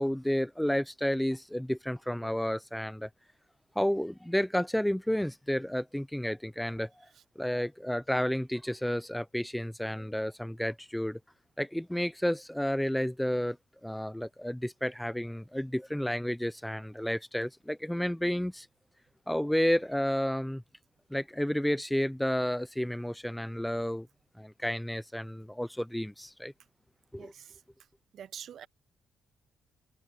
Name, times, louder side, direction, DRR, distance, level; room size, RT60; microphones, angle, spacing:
voice 1, 0.0-3.1 3.7-7.1 7.4-11.2 11.6-13.6 13.8-18.7 19.3-20.6 21.1-24.1 24.4-26.5 27.1-27.3, equal, 5° left, 0.9 m, -31 dB
voice 2, 27.2-27.6 28.1-28.7, right 9 dB, 65° right, 1.0 m, -45 dB
cardioid pair, 90°, 0 cm